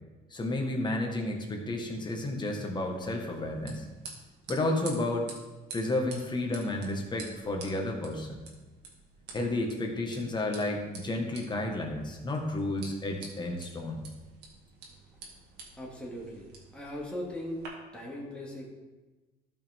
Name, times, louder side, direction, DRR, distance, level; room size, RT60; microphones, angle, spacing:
voice 1, 0.3-3.8 4.5-5.3 5.7-8.4 9.3-14.1, left 2 dB, 25° left, 2 dB, 1.6 m, -31 dB
sound 1, 2.9-17.7, right 4 dB, 80° right, 2.0 m, -50 dB
voice 2, 15.7-17.6 17.9-18.7, left 1 dB, 5° left, -4 dB, 2.3 m, -39 dB
13.0 x 5.5 x 3.6 m, 1.2 s
cardioid pair, 110°, 17 cm